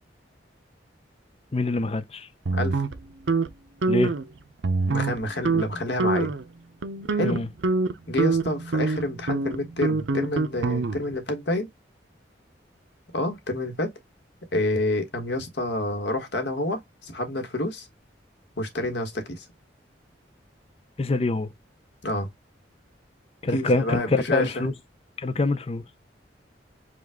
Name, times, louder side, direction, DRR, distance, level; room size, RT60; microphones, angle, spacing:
voice 1, 1.5-2.3 3.9-4.1 7.2-7.5 21.0-21.5 23.4-24.7 25.2-25.8, left 2 dB, 35° left, 0.5 m, -25 dB
voice 2, 2.5-2.8 4.9-6.3 7.1-7.4 8.1-11.7 13.1-13.9 14.5-17.9 18.6-19.4 22.0-22.3 23.4-24.6, left 1 dB, 70° left, 1.4 m, -28 dB
sound 1, 2.5-3.5 3.8-4.2 4.6-5.2 5.5-5.7 6.0-6.4 6.8-11.2, right 3 dB, 85° right, 0.7 m, -25 dB
5.1 x 2.4 x 3.6 m
head